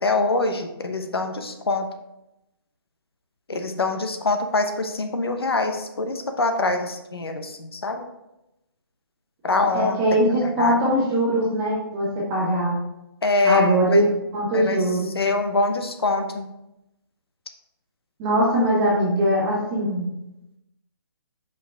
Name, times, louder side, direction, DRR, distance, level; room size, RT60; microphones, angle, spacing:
voice 1, 0.0-1.9 3.5-8.0 9.4-10.0 10.4-10.7 13.2-14.0 14.5-14.8 15.1-16.5, left 3 dB, 85° left, 6 dB, 0.9 m, -24 dB
voice 2, 9.7-12.8 13.4-15.1 18.2-20.0, right 1 dB, 15° right, -7 dB, 1.9 m, -21 dB
6.0 x 5.1 x 3.5 m, 0.90 s
hypercardioid pair, 165°, 13 cm